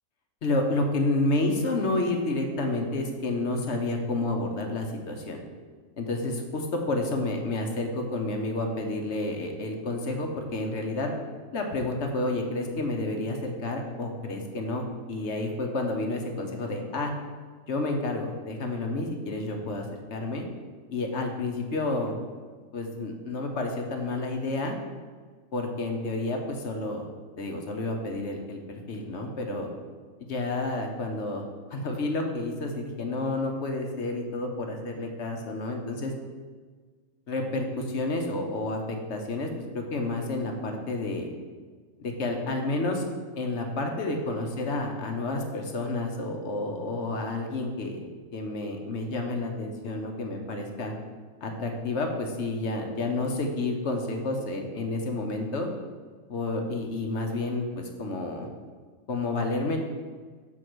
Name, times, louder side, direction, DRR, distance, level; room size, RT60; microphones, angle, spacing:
voice 1, 0.4-5.4 6.0-11.1 11.5-17.1 17.7-20.4 20.9-22.2 22.7-24.7 25.5-27.1 27.4-29.7 30.2-31.4 31.7-36.1 37.3-39.5 39.7-41.3 42.0-43.1 43.4-48.0 48.3-50.9 51.4-55.7 56.3-58.5 59.1-59.8, left 2 dB, 60° left, 3 dB, 1.1 m, -30 dB
6.4 x 4.1 x 6.1 m, 1.5 s
omnidirectional pair, 1.4 m